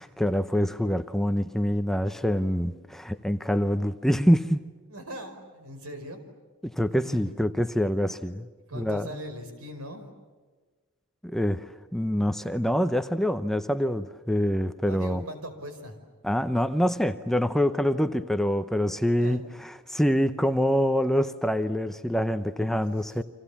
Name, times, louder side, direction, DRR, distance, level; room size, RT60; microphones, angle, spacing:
voice 1, 0.0-4.6 6.6-8.5 8.7-9.1 11.2-15.2 16.2-23.2, equal, ahead, 9 dB, 0.7 m, -25 dB
voice 2, 4.9-6.2 6.8-7.4 8.7-10.1 14.9-16.0 19.2-19.5 22.9-23.2, equal, 85° right, 7 dB, 5.0 m, -41 dB
30.0 x 26.5 x 7.2 m, 1.4 s
head